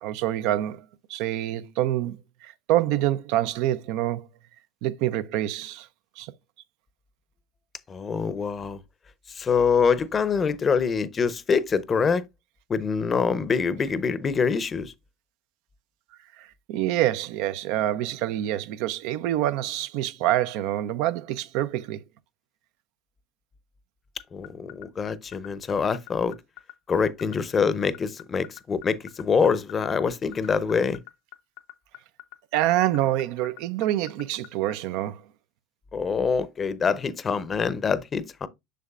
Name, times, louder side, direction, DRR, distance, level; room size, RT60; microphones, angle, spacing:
voice 1, 0.0-4.3 4.8-5.9 6.2-6.3 16.4-22.0 32.5-35.2, right 13 dB, 65° right, 0.5 m, -26 dB
voice 2, 7.9-8.8 9.3-12.2 12.7-14.9 24.3-26.4 26.9-31.0 35.9-38.5, left 5 dB, 30° left, 0.7 m, -25 dB
sound 1, 24.2-34.7, left 17 dB, 70° left, 0.8 m, -43 dB
6.8 x 6.4 x 2.4 m
hypercardioid pair, 80°, 0 cm